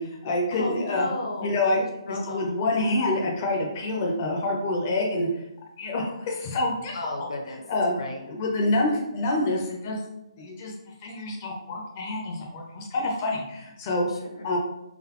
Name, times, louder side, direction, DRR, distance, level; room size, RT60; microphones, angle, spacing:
voice 1, 0.0-1.1 1.4-1.8 2.1-5.3 5.8-7.3 7.7-8.0 8.3-10.0 10.4-10.7 11.0-14.1 14.4-14.6, left 2 dB, 20° left, -1 dB, 0.4 m, -27 dB
voice 2, 0.5-2.5 6.9-7.6 8.0-8.2 14.1-14.5, left 2 dB, 85° left, 2 dB, 1.0 m, -34 dB
3.9 x 3.7 x 2.9 m, 0.87 s
hypercardioid pair, 180°, 3 cm